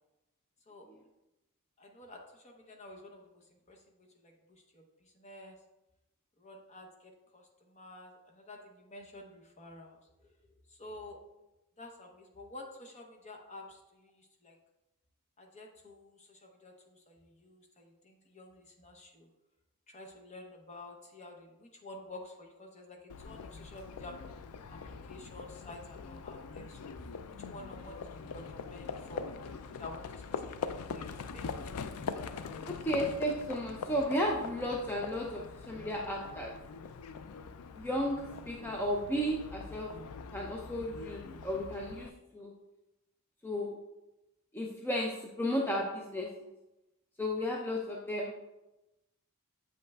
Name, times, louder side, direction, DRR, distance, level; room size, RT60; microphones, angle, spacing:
voice 1, 1.8-5.6 6.4-10.3 10.7-11.2 11.8-14.6 15.4-19.3 19.9-24.2 24.7-27.0 27.3-29.2 29.8-31.5, left 2 dB, 30° left, 2 dB, 0.9 m, -50 dB
Livestock farm animals working animals, 23.1-42.1, left 5 dB, 85° left, 0.4 m, -43 dB
voice 2, 32.7-36.5 37.8-39.9 40.3-42.1 42.3-42.5 43.4-43.8 44.5-46.3 47.2-48.3, equal, 10° left, -2 dB, 0.5 m, -34 dB
8.0 x 5.4 x 2.3 m, 0.97 s
head